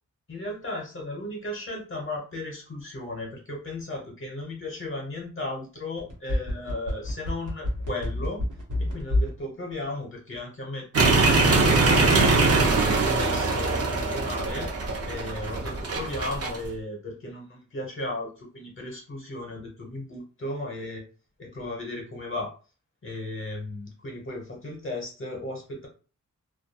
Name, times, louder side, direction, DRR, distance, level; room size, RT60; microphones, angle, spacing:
voice 1, 0.3-8.4 8.8-14.7 15.0-21.0 21.4-22.5 23.0-25.9, left 2 dB, 45° left, 0 dB, 0.7 m, -36 dB
sound 1, 6.0-9.4 9.7-9.8, left 1 dB, 80° right, 1.0 m, -27 dB
sound 2, 10.9-16.7, right 3 dB, 50° right, 0.6 m, -22 dB
2.3 x 2.2 x 2.7 m, 0.37 s
wide cardioid pair, 135°, 30 cm